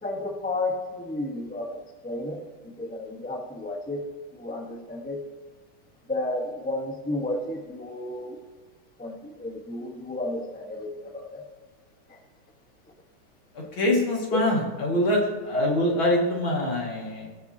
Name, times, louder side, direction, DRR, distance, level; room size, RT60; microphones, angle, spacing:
voice 1, 0.0-4.1 4.3-5.2 6.1-8.4 9.0-11.4 12.1-12.2 14.3-14.4 15.5-15.6, left 2 dB, 5° left, 1 dB, 0.9 m, -32 dB
voice 2, 13.5-17.3, left 1 dB, 65° left, -2 dB, 3.0 m, -24 dB
18.5 x 7.1 x 2.9 m, 1.4 s
omnidirectional pair, 2.3 m